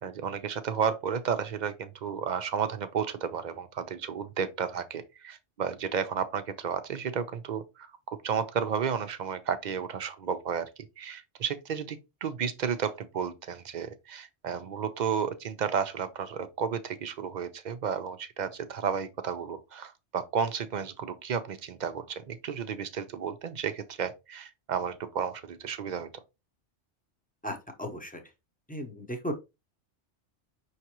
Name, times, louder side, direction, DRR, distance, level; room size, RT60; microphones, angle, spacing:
voice 1, 0.0-26.2, right 7 dB, 55° right, 0.5 m, -32 dB
voice 2, 27.4-28.2 28.7-29.3, equal, 10° left, 0.8 m, -36 dB
5.7 x 3.2 x 2.9 m
omnidirectional pair, 1.2 m